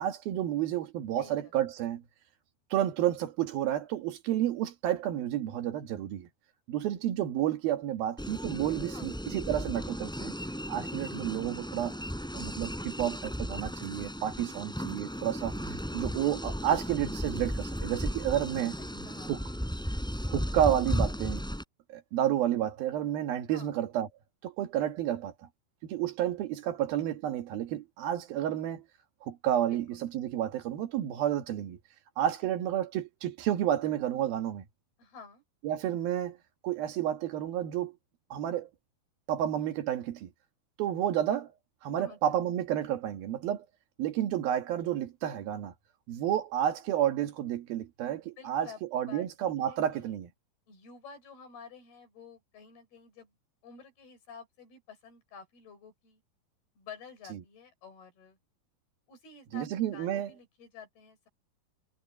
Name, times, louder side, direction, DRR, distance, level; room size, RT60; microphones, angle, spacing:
voice 1, 0.0-2.0 2.7-6.3 6.7-10.3 10.7-11.9 12.3-18.8 19.3-19.4 20.2-21.4 21.9-24.1 24.4-25.3 25.8-28.8 29.2-31.8 32.2-34.6 35.6-36.4 36.6-38.0 38.3-38.7 39.3-40.3 40.8-41.5 41.8-43.6 44.0-45.7 46.1-48.7 48.9-50.3 59.5-60.3, right 11 dB, 75° right, 3.4 m, -30 dB
voice 2, 1.2-1.5 8.9-9.2 18.8-19.6 23.5-23.8 29.7-30.0 35.0-35.4 42.0-42.2 48.4-50.1 50.7-53.3 53.6-56.2 56.8-58.4 59.1-61.3, left 5 dB, 85° left, 7.6 m, -51 dB
sound 1, 8.2-21.6, equal, ahead, 4.7 m, -35 dB
sound 2, 14.9-21.3, right 3 dB, 45° right, 7.7 m, -53 dB
omnidirectional pair, 4.4 m